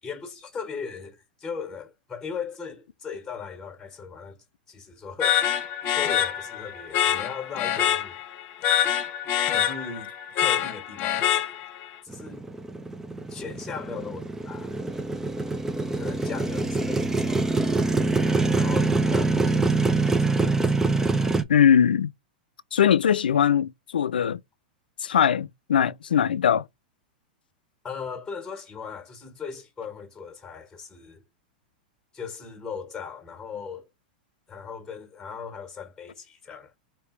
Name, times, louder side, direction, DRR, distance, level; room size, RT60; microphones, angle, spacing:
voice 1, 0.0-5.4 5.9-8.2 9.5-11.5 12.0-12.4 13.3-14.7 16.0-17.6 18.5-20.6 27.8-31.2 32.1-33.9 34.5-36.7, left 6 dB, 10° left, 1.5 m, -38 dB
sound 1, 5.2-11.9, left 10 dB, 40° left, 1.0 m, -25 dB
Motorcycle, 12.1-21.4, right 3 dB, 10° right, 0.6 m, -25 dB
voice 2, 21.5-22.1 22.7-24.4 25.0-26.6, left 8 dB, 90° left, 0.4 m, -21 dB
3.2 x 2.8 x 4.5 m
hypercardioid pair, 115°, 5 cm